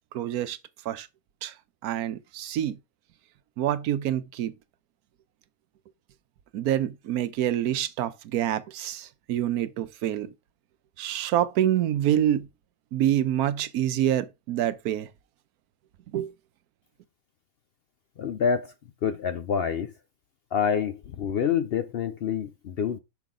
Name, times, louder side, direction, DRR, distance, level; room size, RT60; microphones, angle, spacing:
voice 1, 0.1-0.6 0.9-1.1 1.4-1.5 1.8-2.8 3.6-4.5 6.5-10.3 11.0-12.5 12.9-15.1 16.1-16.3, right 11 dB, 90° right, 1.2 m, -26 dB
voice 2, 18.2-18.7 19.0-19.9 20.5-23.0, left 7 dB, 65° left, 0.6 m, -27 dB
6.0 x 5.9 x 3.7 m
omnidirectional pair, 1.5 m